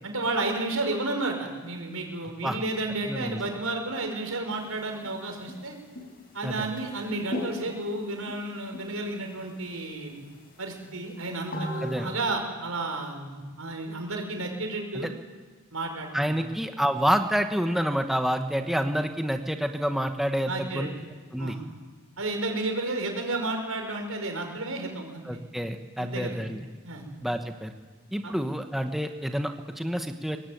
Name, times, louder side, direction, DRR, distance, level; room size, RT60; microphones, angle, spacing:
voice 1, 0.0-5.8 6.3-10.1 10.6-15.1 15.7-16.5 20.5-20.9 21.4-21.6 22.2-25.2 26.0-26.4 26.8-27.0 28.2-28.3, right 2 dB, 90° right, 3 dB, 5.5 m, -32 dB
sound 1, 4.5-5.1 5.5-5.6 5.9-6.2 6.4-8.4 8.7-9.2 9.7-9.8 10.1-10.2 10.8-12.2, left 1 dB, 45° left, 4.6 m, -37 dB
voice 2, 11.8-12.1 14.9-15.1 16.1-20.9 21.3-21.6 25.2-26.6 27.2-27.7 28.1-30.4, equal, ahead, 5 dB, 1.1 m, -28 dB
23.5 x 20.0 x 9.4 m, 1.4 s
head